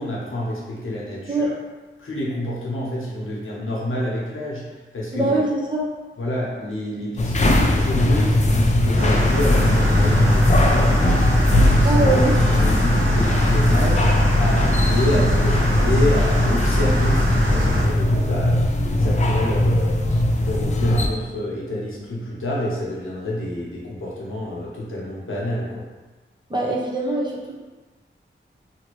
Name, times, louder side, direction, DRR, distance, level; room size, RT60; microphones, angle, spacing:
voice 1, 0.0-1.5 2.0-5.3 6.2-12.0 12.5-25.9, left 1 dB, 75° left, -5 dB, 0.9 m, -28 dB
voice 2, 5.1-5.9 11.8-12.4 26.5-27.6, right 2 dB, 20° right, -4 dB, 0.7 m, -22 dB
sound 1, 7.2-21.1, left 1 dB, 35° left, 0.4 m, -19 dB
sound 2, 9.0-17.9, left 1 dB, 75° right, 0.9 m, -21 dB
2.8 x 2.8 x 2.9 m, 1.3 s
wide cardioid pair, 70°, 21 cm